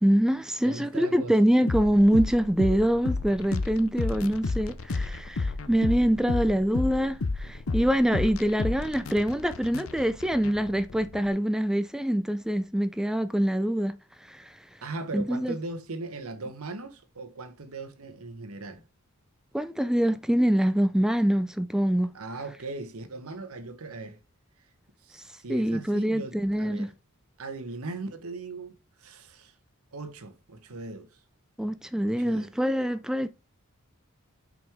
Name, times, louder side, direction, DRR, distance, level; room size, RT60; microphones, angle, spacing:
voice 1, 0.0-14.0 14.3-14.5 15.1-15.6 19.5-22.1 25.5-26.9 31.6-33.3, equal, 5° right, 0.3 m, -25 dB
voice 2, 0.6-1.4 14.8-18.8 22.1-24.2 25.0-26.9 27.4-29.5 29.9-31.2 32.0-32.5, right 3 dB, 75° right, 1.1 m, -39 dB
sound 1, 1.7-11.3, left 3 dB, 65° left, 0.7 m, -32 dB
6.1 x 5.2 x 3.5 m
head